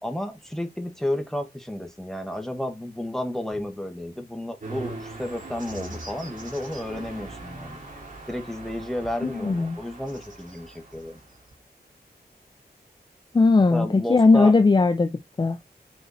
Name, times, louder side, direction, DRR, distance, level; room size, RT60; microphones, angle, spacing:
voice 1, 0.0-7.8 8.3-11.2 13.7-14.5, left 1 dB, ahead, 1.4 m, -32 dB
sound 1, 4.6-11.6, right 2 dB, 50° right, 2.5 m, -41 dB
voice 2, 9.2-9.8 13.3-15.6, left 3 dB, 25° left, 0.4 m, -19 dB
6.4 x 4.5 x 4.1 m
wide cardioid pair, 105°, 17 cm